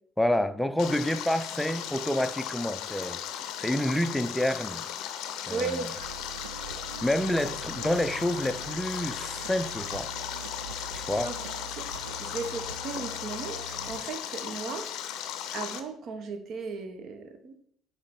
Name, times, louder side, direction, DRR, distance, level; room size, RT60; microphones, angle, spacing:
voice 1, 0.2-3.2 3.6-4.9 5.5-5.9 7.0-10.1 11.0-11.3, left 1 dB, 5° left, 0.5 m, -28 dB
Stream, 0.8-15.8, left 10 dB, 60° left, 0.5 m, -37 dB
voice 2, 5.5-5.9 11.2-11.4 11.7-14.9 15.3-17.7, right 4 dB, 50° right, 0.8 m, -36 dB
sound 1, 6.0-14.0, right 5 dB, 80° right, 0.4 m, -43 dB
8.2 x 3.1 x 4.1 m
figure-of-eight pair, 55°, 0 cm